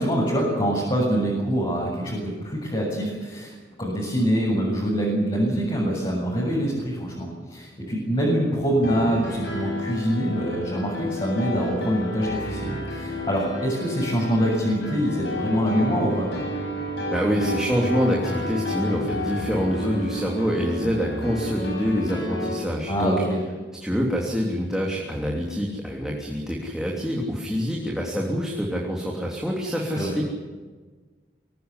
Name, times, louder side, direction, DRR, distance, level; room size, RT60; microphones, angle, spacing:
voice 1, 0.0-16.3 22.9-23.4 29.9-30.1, equal, 30° left, -4 dB, 7.5 m, -25 dB
Piano, 8.8-22.5, left 1 dB, 70° left, 7.4 m, -31 dB
voice 2, 17.1-23.1 23.8-30.3, equal, 5° right, -2 dB, 3.2 m, -26 dB
25.0 x 17.5 x 9.9 m, 1.4 s
head